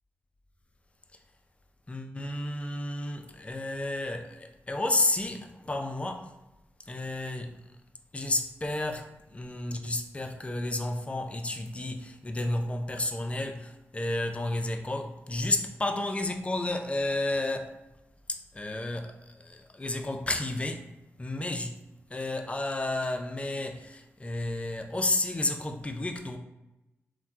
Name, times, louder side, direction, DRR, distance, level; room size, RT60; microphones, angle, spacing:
voice 1, 1.9-6.3 6.9-7.6 8.1-17.7 18.3-20.9 21.2-21.8 22.1-26.4, left 2 dB, 25° left, 0.5 m, -31 dB
2.9 x 2.1 x 3.4 m
cardioid pair, 55°, 5 cm